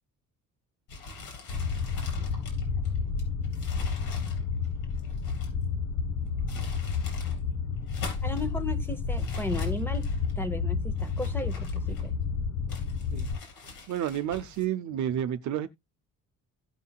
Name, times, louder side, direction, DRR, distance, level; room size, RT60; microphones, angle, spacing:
sound 1, 0.9-5.6 6.3-7.4 7.8-8.5 9.1-10.3 11.0-12.3 12.7-14.7, left 3 dB, 80° left, 3.9 m, -44 dB
sound 2, 1.5-13.4, left 5 dB, 60° left, 1.0 m, -30 dB
voice 1, 6.4-6.7 13.1-13.3 13.9-15.7, right 10 dB, 60° right, 0.7 m, -31 dB
voice 2, 8.2-10.1 10.4-12.1, left 2 dB, 5° left, 0.9 m, -35 dB
16.5 x 5.6 x 2.3 m
cardioid pair, 180°, 33 cm